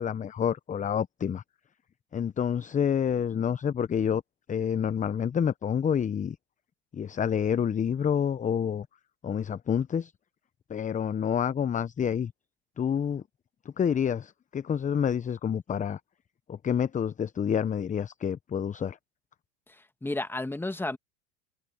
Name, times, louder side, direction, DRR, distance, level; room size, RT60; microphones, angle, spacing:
voice 1, 0.0-1.4 2.1-4.2 4.5-6.4 6.9-8.9 9.2-10.1 10.7-12.3 12.8-13.2 13.6-16.0 16.5-19.0, left 8 dB, 20° left, 0.9 m, -28 dB
voice 2, 19.7-21.0, left 2 dB, 5° left, 1.7 m, -32 dB
hypercardioid pair, 95°, 35 cm